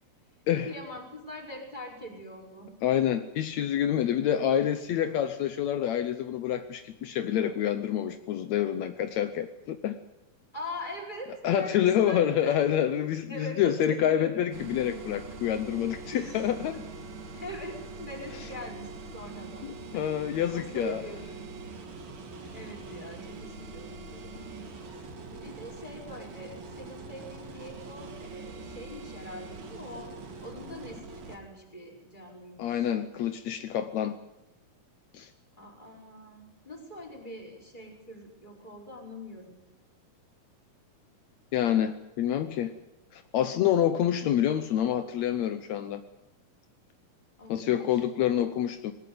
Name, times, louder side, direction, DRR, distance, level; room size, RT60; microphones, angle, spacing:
voice 1, 0.7-2.7 10.5-12.9 13.3-14.4 16.1-16.8 17.3-20.1 20.5-21.5 22.5-24.5 25.3-30.1 30.4-32.9 35.6-39.6 47.4-48.0, left 1 dB, 10° left, 0 dB, 4.9 m, -42 dB
voice 2, 2.8-10.0 11.4-16.8 19.6-21.0 32.6-34.1 35.1-35.3 41.5-42.7 43.1-46.0 47.5-48.9, left 10 dB, 75° left, 9 dB, 1.6 m, -27 dB
sound 1, 14.5-31.4, right 3 dB, 65° right, 4.7 m, -43 dB
20.5 x 19.0 x 9.4 m, 0.92 s
omnidirectional pair, 4.4 m